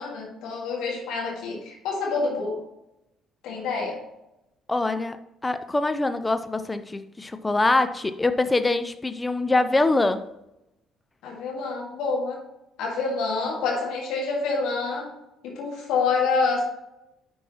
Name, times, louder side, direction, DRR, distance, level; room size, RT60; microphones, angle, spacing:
voice 1, 0.0-2.6 3.4-4.0 11.2-12.4 12.8-15.1 15.4-16.6, left 4 dB, 60° left, -1 dB, 1.8 m, -27 dB
voice 2, 4.7-5.2 5.4-10.2, left 2 dB, 20° left, 10 dB, 0.7 m, -24 dB
9.9 x 5.5 x 3.0 m, 0.88 s
figure-of-eight pair, 45°, 0 cm